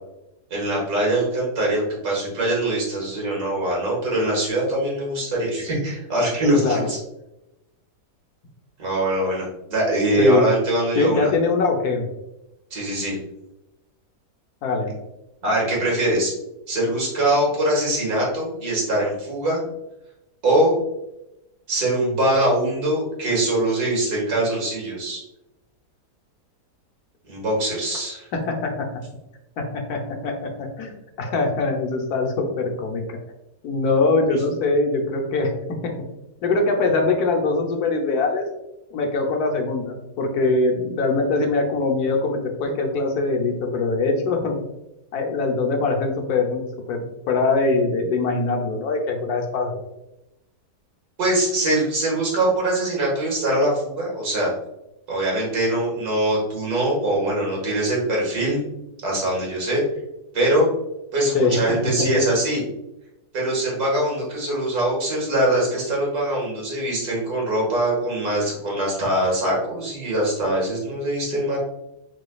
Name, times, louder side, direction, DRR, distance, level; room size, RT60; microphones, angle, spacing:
voice 1, 0.5-7.0 8.8-11.3 12.7-13.2 15.4-16.3 16.7-19.6 20.4-20.8 21.7-25.2 27.3-28.2 51.2-54.5 55.1-58.6 59.0-59.8 60.3-60.7 61.1-62.6 63.3-71.6, right 1 dB, 70° right, -3 dB, 2.0 m, -22 dB
voice 2, 11.0-12.1 14.6-14.9 28.3-28.9 29.6-33.2 33.6-35.9 36.4-38.4 38.9-44.6 45.1-46.6 46.9-49.8 61.3-62.2, left 3 dB, 75° left, 3 dB, 1.3 m, -22 dB
5.0 x 3.9 x 2.3 m, 0.91 s
omnidirectional pair, 1.7 m